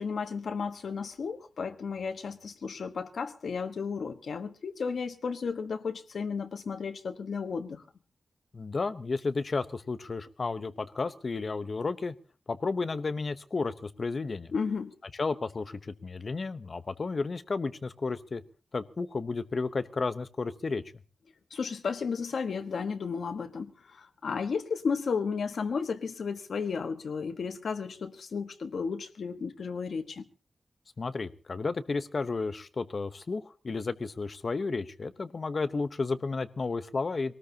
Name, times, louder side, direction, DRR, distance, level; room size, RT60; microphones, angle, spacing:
voice 1, 0.0-7.8 14.5-14.9 21.5-30.2, left 5 dB, 80° left, 1.3 m, -33 dB
voice 2, 8.5-12.1 12.5-14.5 15.2-18.4 18.7-20.8 31.0-37.4, left 4 dB, 45° left, 0.9 m, -32 dB
23.0 x 19.0 x 2.9 m
wide cardioid pair, 145°, 0 cm